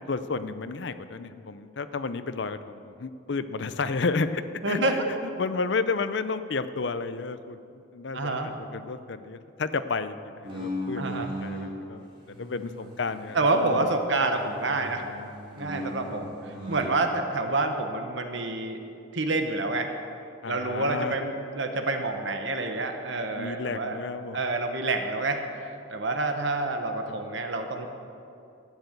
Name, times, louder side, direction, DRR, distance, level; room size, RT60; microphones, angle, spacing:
voice 1, 0.1-5.0 5.4-13.9 20.4-21.1 23.3-24.4 27.1-27.2, left 4 dB, 60° left, 12 dB, 0.6 m, -32 dB
voice 2, 4.6-5.0 8.1-8.5 11.0-11.4 13.3-15.0 15.6-18.8 19.1-20.0 20.5-24.0 24.3-27.9, right 2 dB, 60° right, 5 dB, 1.1 m, -28 dB
sound 1, 10.4-11.7 12.2-14.0 14.2-16.9, equal, 25° right, 2.9 m, -38 dB
12.0 x 9.2 x 8.0 m, 2.6 s
head